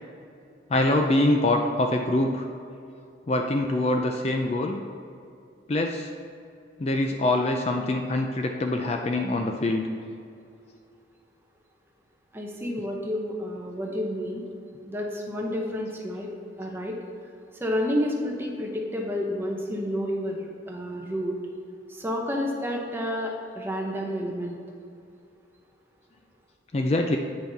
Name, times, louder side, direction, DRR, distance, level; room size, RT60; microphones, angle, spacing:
voice 1, 0.7-2.5 3.3-4.8 5.7-6.1 6.8-9.9 26.7-27.2, left 2 dB, 35° left, 3 dB, 0.4 m, -24 dB
voice 2, 12.3-14.4 14.8-16.3 16.6-16.9 17.6-21.3 21.9-24.6, equal, 10° right, 0 dB, 0.8 m, -30 dB
8.7 x 5.8 x 4.0 m, 2.5 s
head